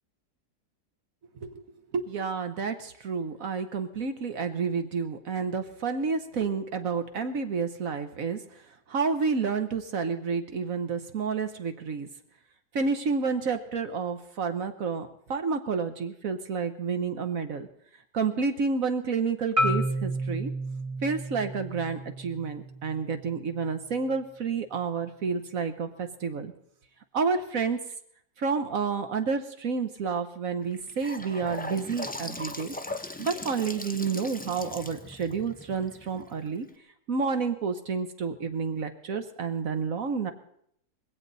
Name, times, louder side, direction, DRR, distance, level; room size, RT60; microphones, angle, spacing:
voice 1, 1.9-8.4 8.9-12.1 12.7-17.7 18.1-20.5 21.0-26.5 27.1-27.8 28.4-32.7 33.2-36.7 37.1-40.3, right 5 dB, 60° right, 8 dB, 1.4 m, -30 dB
Marimba xylophone, 19.6-23.7, right 1 dB, 25° right, 1.1 m, -31 dB
Gurgling / Sink (filling or washing) / Bathtub (filling or washing), 30.6-36.7, left 2 dB, 10° left, 0.4 m, -39 dB
20.0 x 16.5 x 4.1 m, 0.68 s
omnidirectional pair, 1.7 m